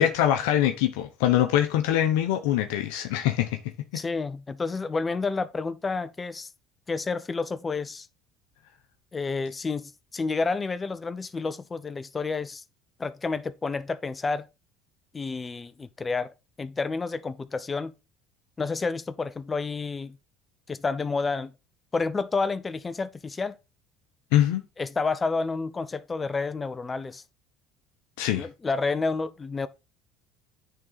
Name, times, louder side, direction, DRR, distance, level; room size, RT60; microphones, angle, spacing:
voice 1, 0.0-3.6 3.9-4.0 24.3-24.6 28.2-28.5, left 11 dB, 80° left, 0.8 m, -23 dB
voice 2, 3.9-6.5 6.9-8.1 9.1-12.6 13.0-14.5 15.1-17.9 18.6-20.2 20.7-21.5 21.9-23.6 24.8-27.2 28.3-29.7, left 4 dB, 25° left, 0.6 m, -30 dB
9.3 x 3.8 x 4.1 m
supercardioid pair, 85°, 0 cm